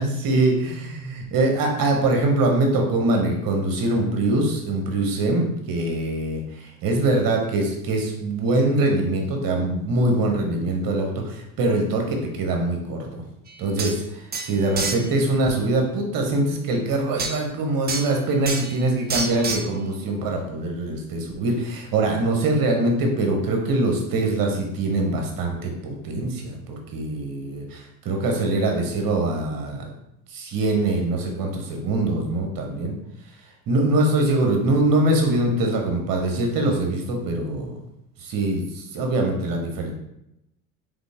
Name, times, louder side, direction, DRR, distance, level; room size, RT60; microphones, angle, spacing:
voice 1, 0.0-13.2 13.6-29.9 30.3-32.9 33.7-37.8 38.2-39.9, right 2 dB, 45° right, 2 dB, 1.4 m, -23 dB
sound 1, 13.5-13.6 13.8-14.0 14.3-15.1 17.2-17.4 17.9-18.1 18.4-18.8 19.1-19.7, right 4 dB, 20° right, 0.7 m, -28 dB
3.9 x 3.7 x 3.5 m, 0.85 s
hypercardioid pair, 75°, 45 cm